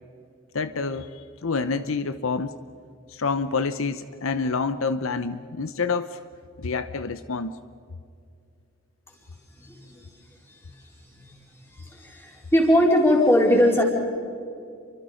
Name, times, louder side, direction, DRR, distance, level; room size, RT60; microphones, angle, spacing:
voice 1, 0.5-2.5 3.1-6.2 6.6-7.5, left 4 dB, 70° left, 11 dB, 0.7 m, -27 dB
voice 2, 9.6-10.1 10.5-10.7 11.0-11.3 11.7-13.8, left 1 dB, 10° left, -1 dB, 4.3 m, -21 dB
29.5 x 24.5 x 5.1 m, 2.3 s
head